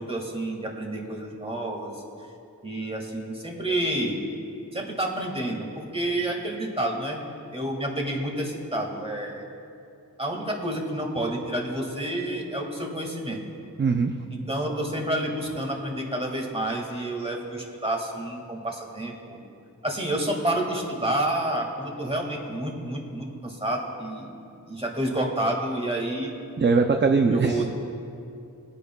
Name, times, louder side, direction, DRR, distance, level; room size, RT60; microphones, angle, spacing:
voice 1, 0.0-1.9 2.6-4.2 4.7-7.2 7.5-9.5 10.2-13.4 14.3-19.4 19.8-24.3 24.7-26.3 27.3-27.7, right 1 dB, 15° right, -1 dB, 1.9 m, -29 dB
voice 2, 13.8-14.1 26.6-27.7, right 4 dB, 35° right, 5 dB, 0.4 m, -21 dB
20.5 x 9.7 x 2.3 m, 2.6 s
wide cardioid pair, 90°, 35 cm